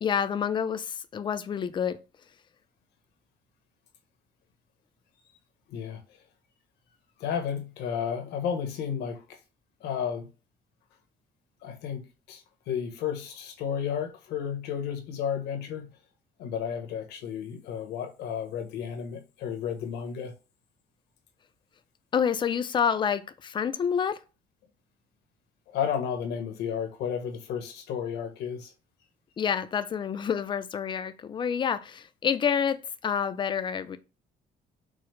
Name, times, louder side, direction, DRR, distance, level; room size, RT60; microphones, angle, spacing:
voice 1, 0.0-2.0 22.1-24.2 29.4-34.0, left 7 dB, 30° left, 0.4 m, -28 dB
voice 2, 5.7-6.0 7.2-9.4 9.8-10.3 11.6-15.9 16.4-20.3 25.7-28.7, left 8 dB, 80° left, 0.9 m, -32 dB
4.7 x 2.0 x 3.2 m
cardioid pair, 110°, 17 cm